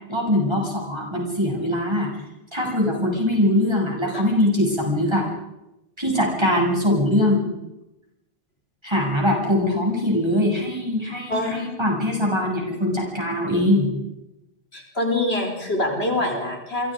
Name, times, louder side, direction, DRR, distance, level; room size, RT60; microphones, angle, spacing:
voice 1, 0.1-2.1 2.5-5.3 6.0-7.4 8.8-13.9, left 1 dB, 25° right, -1 dB, 7.8 m, -22 dB
voice 2, 11.3-11.6 14.7-16.9, left 1 dB, 85° left, 2 dB, 5.0 m, -25 dB
27.5 x 25.0 x 5.2 m, 0.95 s
omnidirectional pair, 1.0 m